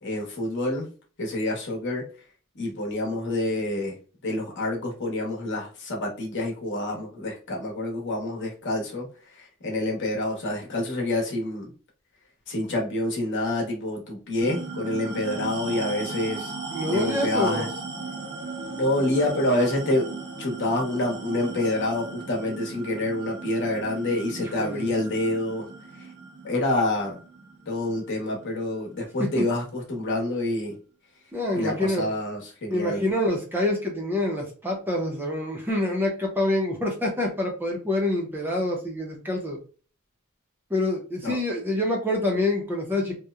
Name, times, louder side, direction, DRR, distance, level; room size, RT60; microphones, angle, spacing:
voice 1, 0.0-0.9 1.2-2.1 2.5-4.0 4.2-11.7 12.5-16.5 16.9-17.7 18.7-20.1 20.4-25.7 25.9-26.1 26.4-27.2 27.7-30.8 31.5-33.1 41.2-41.4, left 1 dB, 55° left, -1 dB, 0.9 m, -27 dB
sound 1, 14.4-29.2, right 3 dB, 50° right, 0.6 m, -37 dB
voice 2, 16.7-17.7 24.3-24.8 29.2-29.4 31.3-32.0 32.7-39.6 40.7-43.2, left 1 dB, 10° right, 0 dB, 0.5 m, -26 dB
2.8 x 2.0 x 2.3 m, 0.38 s
head